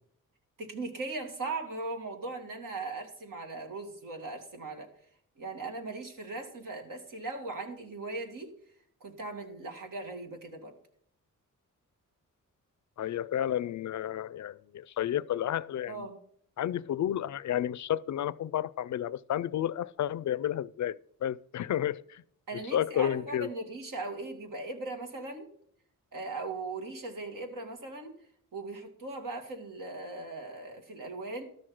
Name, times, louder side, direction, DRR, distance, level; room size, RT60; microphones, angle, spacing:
voice 1, 0.6-4.9 5.4-8.5 9.0-10.8 15.9-16.2 22.5-25.5 26.1-28.1 28.5-31.4, right 3 dB, 80° right, 2.4 m, -39 dB
voice 2, 13.0-16.1 16.6-22.2 22.7-23.5, left 11 dB, 65° left, 0.4 m, -31 dB
13.0 x 6.4 x 6.0 m
wide cardioid pair, 115°, 32 cm